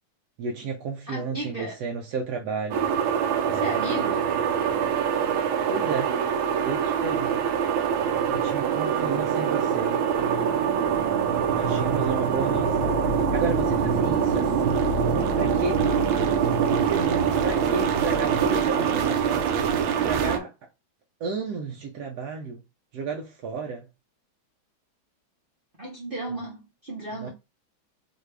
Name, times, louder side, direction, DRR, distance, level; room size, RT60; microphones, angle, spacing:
voice 1, 0.4-2.9 3.4-3.7 5.7-6.1 6.6-7.4 8.3-10.0 11.5-14.8 15.4-15.9 16.7-20.5 21.2-22.6 22.9-23.9 26.3-26.4 27.1-27.3, right 4 dB, 65° right, 1.0 m, -32 dB
voice 2, 1.1-1.8 3.5-4.3 25.8-27.3, right 2 dB, 50° right, 0.6 m, -34 dB
sound 1, 2.7-20.4, right 7 dB, 80° right, 1.5 m, -24 dB
4.1 x 2.6 x 3.3 m
omnidirectional pair, 2.2 m